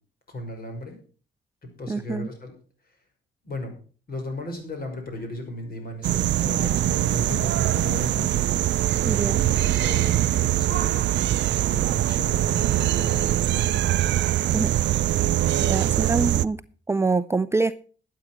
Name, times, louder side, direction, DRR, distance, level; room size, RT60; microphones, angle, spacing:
voice 1, 0.3-1.0 1.6-2.5 2.8-3.0 3.4-3.7 4.1-8.4 8.7-9.1 9.4-11.1 11.7-14.0 15.2-16.0, left 2 dB, 50° left, 5 dB, 5.6 m, -36 dB
voice 2, 1.9-2.3 9.0-9.4 14.4-14.7 15.6-16.6 16.9-17.7, right 3 dB, 15° right, 13 dB, 0.5 m, -25 dB
sound 1, 5.1-7.5, left 1 dB, 25° left, 5.8 m, -57 dB
sound 2, 6.0-16.4, right 13 dB, 65° right, 0.5 m, -23 dB
12.5 x 8.5 x 5.9 m, 0.39 s
cardioid pair, 90°, 20 cm